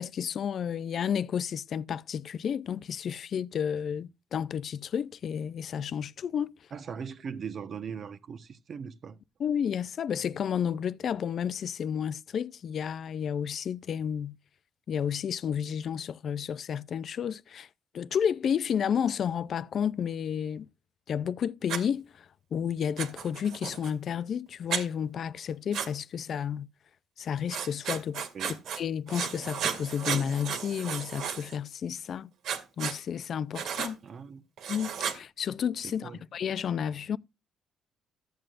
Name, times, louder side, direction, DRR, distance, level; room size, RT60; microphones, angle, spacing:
voice 1, 0.0-6.5 9.4-14.4 14.9-17.7 17.9-20.7 21.1-22.3 22.5-26.7 27.2-28.3 28.8-32.3 32.8-34.0 34.7-37.2, left 8 dB, 60° left, 0.5 m, -31 dB
voice 2, 6.7-9.2 28.3-28.6 34.0-34.4 36.0-36.2, right 6 dB, 55° right, 1.1 m, -39 dB
Writing, 21.7-21.8 23.0-23.9 24.7-24.8 25.7-25.9 27.5-28.8 29.1-31.6 32.4-33.0 33.5-33.9 34.6-35.2, right 7 dB, 80° right, 2.1 m, -34 dB
14.0 x 7.8 x 2.5 m
cardioid pair, 90°, 0 cm